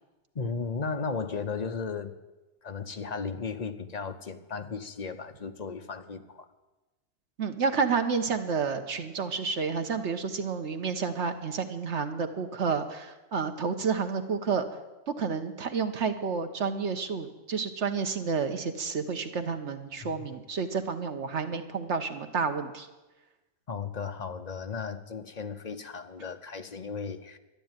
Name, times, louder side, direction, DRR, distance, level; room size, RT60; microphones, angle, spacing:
voice 1, 0.3-2.1 2.6-6.5 20.0-20.2 23.7-27.4, left 5 dB, 40° left, 8 dB, 0.9 m, -35 dB
voice 2, 7.4-14.6 15.1-22.9, right 5 dB, 80° right, 7 dB, 1.4 m, -30 dB
12.5 x 11.0 x 9.1 m, 1.1 s
omnidirectional pair, 1.2 m